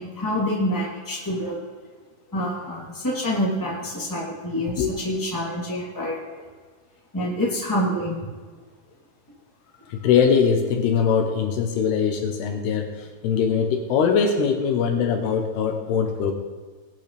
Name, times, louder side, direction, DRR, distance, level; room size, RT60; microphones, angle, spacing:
voice 1, 0.0-1.6 2.3-6.2 7.1-8.2 16.0-16.1, equal, 5° left, -5 dB, 2.5 m, -27 dB
voice 2, 9.9-16.3, left 6 dB, 75° left, 4 dB, 2.9 m, -22 dB
20.0 x 9.1 x 3.4 m, 1.5 s
omnidirectional pair, 4.8 m